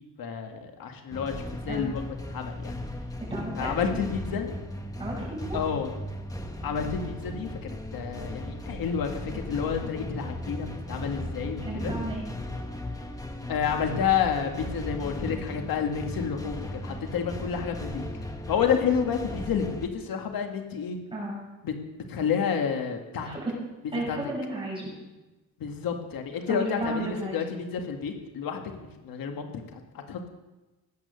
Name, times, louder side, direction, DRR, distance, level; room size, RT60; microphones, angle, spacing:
voice 1, 0.2-2.8 3.6-4.6 5.5-5.9 6.6-11.9 13.5-18.0 18.5-21.0 21.6-23.3 24.1-24.3 25.6-28.7 29.0-30.3, left 7 dB, 80° left, 4 dB, 1.8 m, -30 dB
sound 1, 1.1-19.9, left 1 dB, 10° left, 1.2 m, -37 dB
voice 2, 3.3-4.0 5.0-5.6 11.7-12.2 21.1-21.4 23.2-23.5 23.9-24.9 26.5-27.4, right 2 dB, 15° right, -4 dB, 7.1 m, -33 dB
18.0 x 8.8 x 6.8 m, 1.1 s
wide cardioid pair, 160°, 35 cm